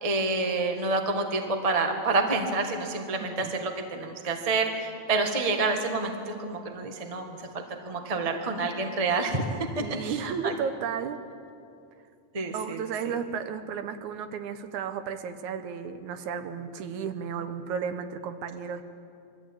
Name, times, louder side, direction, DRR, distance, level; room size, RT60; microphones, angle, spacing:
voice 1, 0.0-9.4 9.8-10.5 12.3-13.1, right 3 dB, 25° right, 4 dB, 0.7 m, -28 dB
voice 2, 9.8-11.2 12.5-18.8, right 7 dB, 75° right, 9 dB, 2.3 m, -33 dB
22.5 x 13.5 x 8.8 m, 2.5 s
omnidirectional pair, 3.5 m